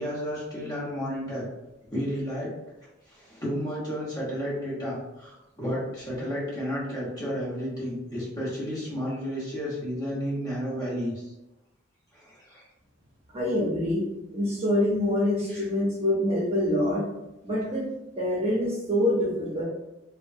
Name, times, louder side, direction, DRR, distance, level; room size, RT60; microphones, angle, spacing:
voice 1, 0.0-1.5 1.9-2.5 2.8-11.3 12.1-12.7 15.5-15.7, equal, 20° left, -7 dB, 1.0 m, -32 dB
voice 2, 13.3-14.0 14.3-17.0 17.4-17.9 18.2-19.6, left 1 dB, 35° right, -5 dB, 0.7 m, -25 dB
2.9 x 2.1 x 2.6 m, 0.96 s
head